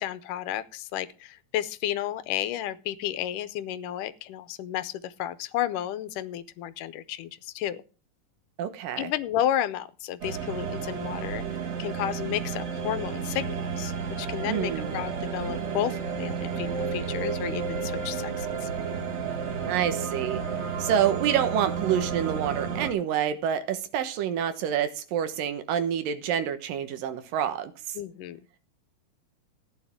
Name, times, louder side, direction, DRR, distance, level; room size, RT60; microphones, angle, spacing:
voice 1, 0.0-7.8 9.0-11.4 11.8-18.7 28.0-28.4, left 12 dB, 80° left, 14 dB, 2.2 m, -32 dB
voice 2, 8.6-9.1 14.5-14.9 19.7-20.4 20.8-28.0, right 9 dB, 85° right, 10 dB, 2.9 m, -27 dB
sound 1, 10.2-22.9, right 6 dB, 50° right, 2.9 m, -32 dB
15.0 x 9.6 x 3.6 m, 0.36 s
omnidirectional pair, 3.8 m